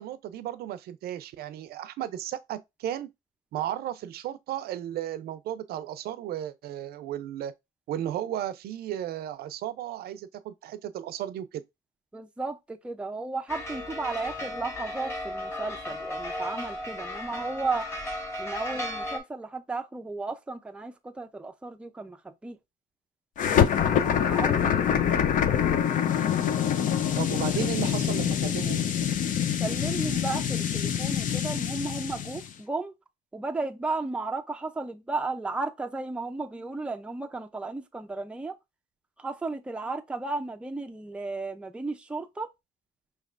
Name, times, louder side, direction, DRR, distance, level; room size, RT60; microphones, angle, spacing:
voice 1, 0.0-3.1 3.5-7.5 7.9-11.6 27.2-28.8, right 11 dB, 65° right, 0.5 m, -34 dB
voice 2, 12.1-17.9 18.4-22.6 23.9-25.3 29.6-32.9 33.3-38.6 39.2-42.5, right 3 dB, 5° right, 0.5 m, -34 dB
sound 1, 13.5-19.2, left 1 dB, 15° left, 1.6 m, -35 dB
sound 2, 23.4-32.5, left 9 dB, 50° left, 0.6 m, -25 dB
5.2 x 3.2 x 2.5 m
cardioid pair, 110°, 17 cm